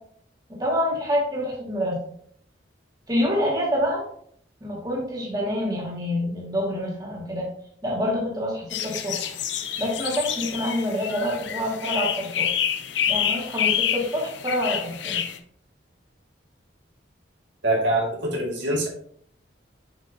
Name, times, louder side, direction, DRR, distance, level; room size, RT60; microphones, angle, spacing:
voice 1, 0.5-2.0 3.1-4.0 4.6-7.5 7.8-9.3 9.8-12.5 13.1-15.2, equal, 20° right, -4 dB, 1.9 m, -27 dB
sound 1, 8.7-15.4, left 9 dB, 70° left, 0.6 m, -28 dB
voice 2, 17.6-18.9, right 1 dB, 70° right, -2 dB, 2.0 m, -24 dB
7.4 x 5.2 x 2.8 m, 0.63 s
head